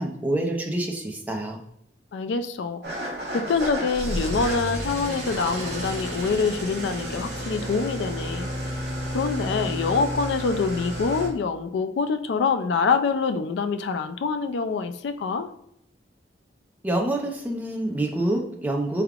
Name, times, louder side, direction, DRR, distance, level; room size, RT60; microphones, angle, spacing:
voice 1, 0.0-1.6 16.8-19.0, right 1 dB, 10° right, 1 dB, 0.5 m, -27 dB
voice 2, 2.1-2.8 3.3-15.5, left 5 dB, 80° left, 9 dB, 0.3 m, -25 dB
Engine starting / Idling, 2.8-11.3, right 1 dB, 60° right, 1.0 m, -31 dB
4.5 x 3.4 x 2.4 m, 0.75 s
head